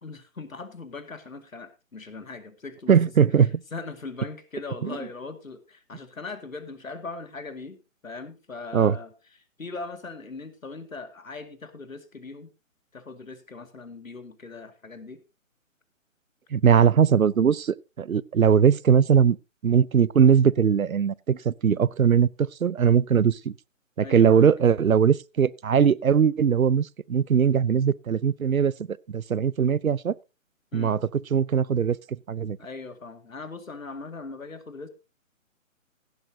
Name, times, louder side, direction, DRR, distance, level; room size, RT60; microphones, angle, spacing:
voice 1, 0.0-3.0 3.7-9.1 9.6-12.5 12.9-15.2 16.7-16.9 24.0-24.5 30.7-31.0 32.6-34.9, left 3 dB, 80° left, 2.2 m, -40 dB
voice 2, 2.9-3.6 4.8-5.0 8.7-9.0 16.5-19.4 19.6-23.6 24.0-30.1 30.7-32.6, right 7 dB, 90° right, 0.6 m, -21 dB
16.0 x 11.5 x 2.7 m
figure-of-eight pair, 140°, 40 cm